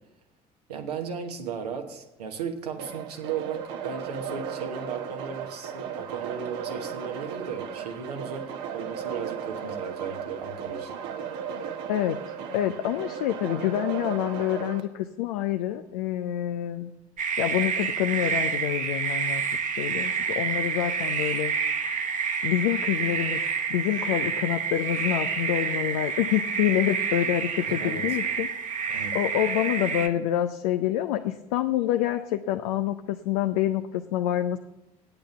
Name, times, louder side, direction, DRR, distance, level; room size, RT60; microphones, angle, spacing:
voice 1, 0.7-10.9 27.7-28.2 28.9-29.2, right 6 dB, 85° right, 4 dB, 1.2 m, -36 dB
sound 1, 2.8-14.8, right 7 dB, 65° right, 0.9 m, -36 dB
voice 2, 12.5-16.9 17.4-22.0 22.4-23.4 23.7-28.5 28.9-34.6, left 12 dB, 75° left, 7 dB, 0.5 m, -27 dB
sound 2, 17.2-30.1, right 6 dB, 40° right, 1.1 m, -28 dB
8.8 x 8.8 x 6.9 m, 0.94 s
figure-of-eight pair, 50°, 20 cm